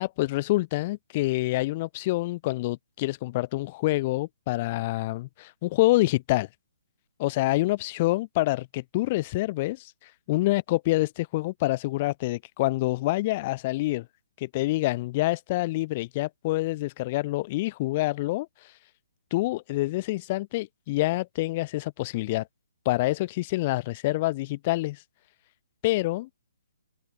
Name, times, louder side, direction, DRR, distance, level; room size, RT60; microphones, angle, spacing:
voice 1, 0.0-6.5 7.2-9.9 10.3-14.1 14.4-18.5 19.3-22.5 22.9-25.0 25.8-26.3, left 19 dB, 25° left, 7.1 m, -26 dB
open air
hypercardioid pair, 175°, 0 cm